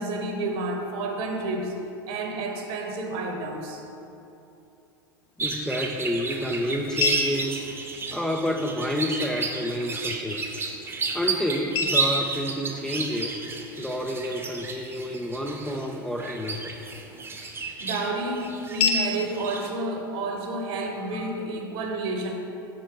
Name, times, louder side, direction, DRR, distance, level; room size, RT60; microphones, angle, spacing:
voice 1, 0.0-1.7 2.1-3.8 17.8-22.3, right 2 dB, 50° right, 3 dB, 1.1 m, -30 dB
sound 1, 5.2-21.2, left 3 dB, 45° left, 0.7 m, -35 dB
voice 2, 5.4-7.7 8.1-10.4 11.1-13.4 13.8-16.8, equal, 5° left, 2 dB, 0.4 m, -29 dB
sound 2, 5.4-19.7, right 4 dB, 20° right, 0.9 m, -32 dB
6.2 x 5.3 x 4.7 m, 2.8 s
hypercardioid pair, 85°, 12 cm